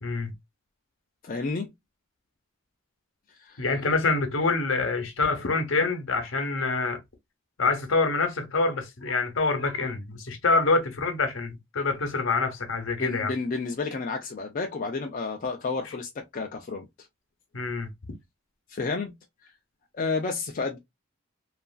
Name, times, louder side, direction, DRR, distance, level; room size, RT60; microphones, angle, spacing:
voice 1, 0.0-0.3 3.6-7.0 7.6-13.3 17.5-17.9, left 3 dB, 70° left, 0.8 m, -26 dB
voice 2, 1.2-1.7 3.4-3.6 13.0-16.9 18.7-19.1 19.9-20.8, left 4 dB, 40° left, 0.4 m, -31 dB
3.0 x 2.4 x 2.2 m
head